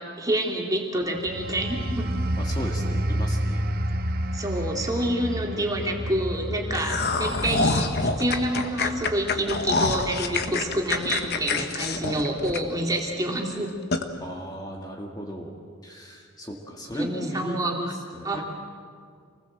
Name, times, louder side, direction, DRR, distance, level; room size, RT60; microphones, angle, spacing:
voice 1, 0.0-2.1 4.3-13.7 16.9-17.7 18.2-18.4, right 1 dB, 15° right, 0 dB, 2.8 m, -28 dB
sound 1, 1.1-11.5 11.9-12.2, right 1 dB, 45° right, 0.9 m, -31 dB
voice 2, 2.4-3.6 14.2-15.5 15.8-18.4, equal, 20° left, 0 dB, 1.9 m, -35 dB
sound 2, 6.7-13.0 13.4-13.5 13.9-14.0, left 3 dB, 50° left, 1.4 m, -26 dB
27.5 x 20.0 x 7.7 m, 2.1 s
head